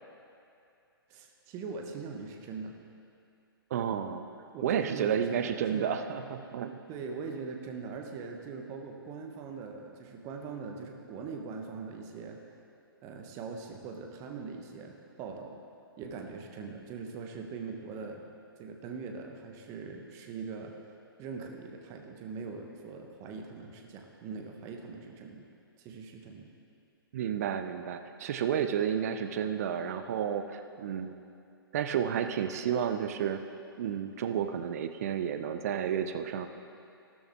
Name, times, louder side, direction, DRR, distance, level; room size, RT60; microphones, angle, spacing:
voice 1, 1.1-2.7 4.5-6.0 6.9-12.4 13.0-15.6 16.0-18.3 18.6-20.7 21.2-25.4 25.8-26.5, right 5 dB, 25° right, 3 dB, 1.1 m, -41 dB
voice 2, 3.7-4.3 4.6-6.8 27.1-31.2 31.7-33.4 33.8-36.5, right 8 dB, 40° right, 8 dB, 0.6 m, -31 dB
14.0 x 12.5 x 3.6 m, 2.6 s
figure-of-eight pair, 120°, 13 cm